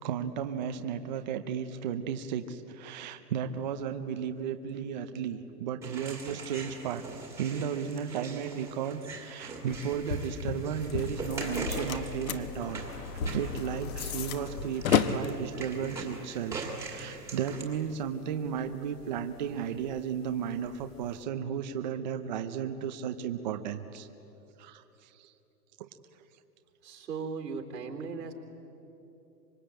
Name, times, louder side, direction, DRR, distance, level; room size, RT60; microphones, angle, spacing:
voice 1, 0.0-7.0 7.4-12.8 13.1-24.1 24.6-25.3 25.8-25.9, right 8 dB, 30° right, 7 dB, 0.6 m, -34 dB
sound 1, 5.8-17.6, right 3 dB, 5° right, 2.0 m, -42 dB
sound 2, 9.7-21.2, left 3 dB, 40° left, 1.8 m, -41 dB
Slam, 11.3-17.3, left 9 dB, 55° left, 1.3 m, -34 dB
voice 2, 26.8-28.3, right 5 dB, 90° right, 3 dB, 3.7 m, -37 dB
25.5 x 21.5 x 8.9 m, 2.9 s
hypercardioid pair, 165°, 48 cm